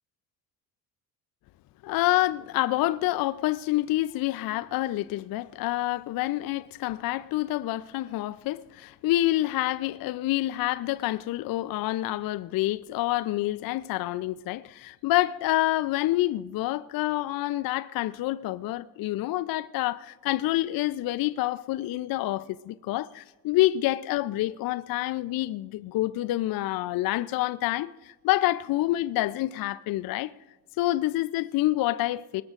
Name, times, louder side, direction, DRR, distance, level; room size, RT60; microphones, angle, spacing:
voice 1, 1.8-30.3 30.8-32.4, left 16 dB, 50° left, 0.5 m, -27 dB
23.5 x 20.0 x 2.5 m
hypercardioid pair, 60°, 47 cm